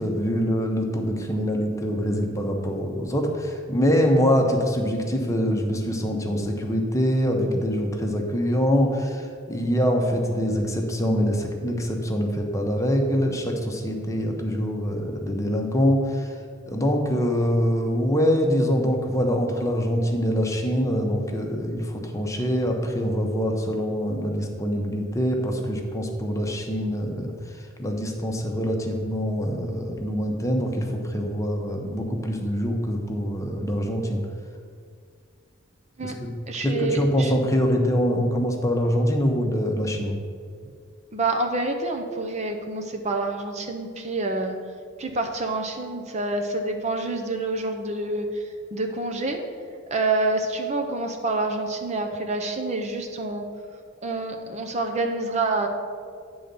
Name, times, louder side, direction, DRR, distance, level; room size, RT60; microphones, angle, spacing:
voice 1, 0.0-16.3 16.7-27.3 27.8-34.2 36.0-36.1 36.6-40.2, equal, 15° left, 2 dB, 0.9 m, -24 dB
voice 2, 36.5-37.3 41.1-44.5 45.0-48.4 48.7-49.4 49.9-53.4 54.0-55.7, right 2 dB, 35° right, 4 dB, 0.6 m, -27 dB
9.4 x 3.9 x 6.8 m, 2.1 s
head